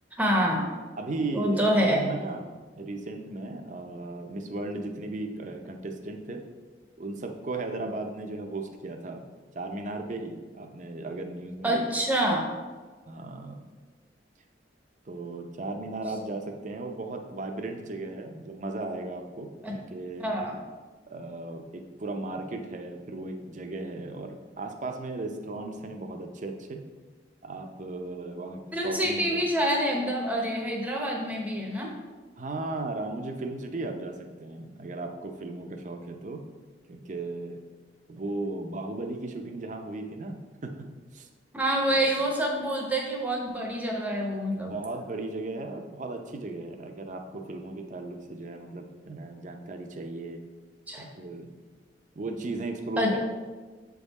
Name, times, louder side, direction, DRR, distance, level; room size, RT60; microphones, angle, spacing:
voice 1, 0.2-0.7 1.3-2.0 11.6-12.5 19.6-19.7 20.2-20.5 28.7-31.9 41.5-44.7 50.9-51.1 53.0-53.2, equal, 10° right, -1 dB, 0.8 m, -26 dB
voice 2, 1.0-6.5 7.0-9.2 9.5-11.8 13.1-13.6 15.1-20.3 21.1-26.8 27.4-29.4 32.4-36.4 36.9-37.6 38.1-40.9 41.1-41.3 41.9-42.0 44.7-50.4 51.0-51.5 52.2-53.2, right 2 dB, 45° right, 5 dB, 0.6 m, -36 dB
7.5 x 3.6 x 4.1 m, 1.4 s
head